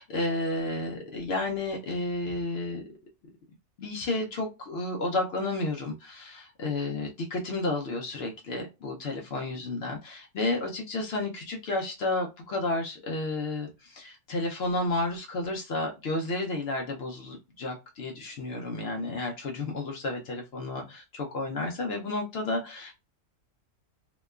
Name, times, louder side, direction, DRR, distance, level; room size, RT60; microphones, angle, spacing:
voice 1, 0.0-2.8 3.8-22.9, left 2 dB, 70° left, 1 dB, 0.6 m, -31 dB
2.8 x 2.2 x 2.2 m, 0.26 s
omnidirectional pair, 1.6 m